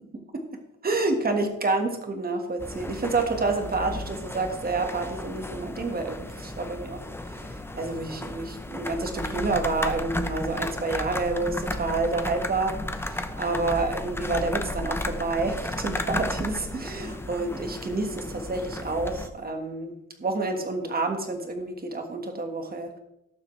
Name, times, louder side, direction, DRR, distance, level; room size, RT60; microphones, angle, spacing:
voice 1, 0.8-23.0, right 3 dB, 30° right, 4 dB, 1.6 m, -29 dB
sound 1, 2.6-19.3, left 1 dB, 10° left, 0.7 m, -34 dB
18.5 x 7.2 x 3.2 m, 0.88 s
wide cardioid pair, 160°, 32 cm